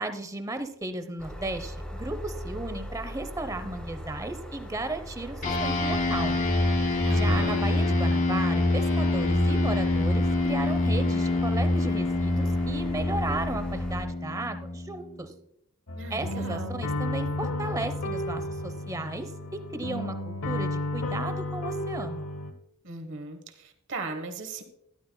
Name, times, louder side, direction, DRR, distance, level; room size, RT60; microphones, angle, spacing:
voice 1, 0.0-6.4 7.1-15.3 16.1-22.3, right 2 dB, 15° right, 9 dB, 0.7 m, -35 dB
sound 1, 1.2-14.1, equal, 5° left, 1.5 m, -39 dB
sound 2, 5.4-15.2, left 2 dB, 40° left, 1.5 m, -25 dB
voice 2, 7.0-7.6 15.9-16.8 22.8-24.6, right 3 dB, 60° right, 6 dB, 1.2 m, -37 dB
sound 3, 15.9-22.5, left 1 dB, 90° left, 0.9 m, -32 dB
12.5 x 11.0 x 2.2 m, 0.74 s
head